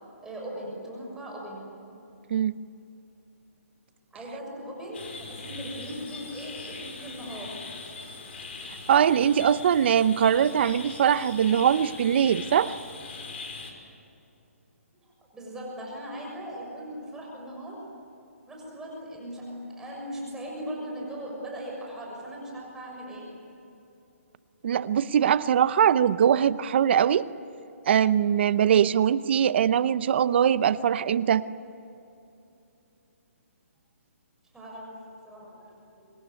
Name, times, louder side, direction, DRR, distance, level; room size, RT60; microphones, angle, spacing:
voice 1, 0.2-1.7 4.1-7.6 15.3-17.8 18.5-23.4 34.5-36.1, equal, 5° right, -2 dB, 6.7 m, -39 dB
sound 1, 4.9-13.7, left 4 dB, 50° left, 5.4 m, -41 dB
voice 2, 8.9-12.7 24.6-27.3 27.9-31.4, right 9 dB, 45° right, 16 dB, 0.8 m, -22 dB
26.0 x 21.0 x 9.6 m, 2.8 s
hypercardioid pair, 155°, 8 cm